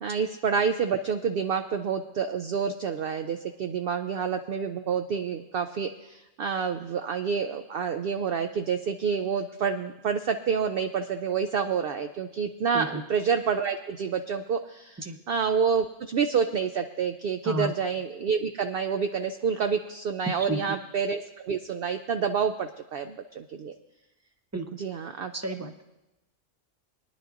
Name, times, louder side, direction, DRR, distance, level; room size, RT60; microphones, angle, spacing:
voice 1, 0.0-15.0 15.3-23.7 24.8-25.3, right 6 dB, 60° right, 7 dB, 0.6 m, -28 dB
voice 2, 20.3-20.8 24.5-24.8 25.3-25.7, right 1 dB, 20° right, 7 dB, 0.4 m, -32 dB
23.0 x 10.5 x 2.5 m, 0.97 s
omnidirectional pair, 1.3 m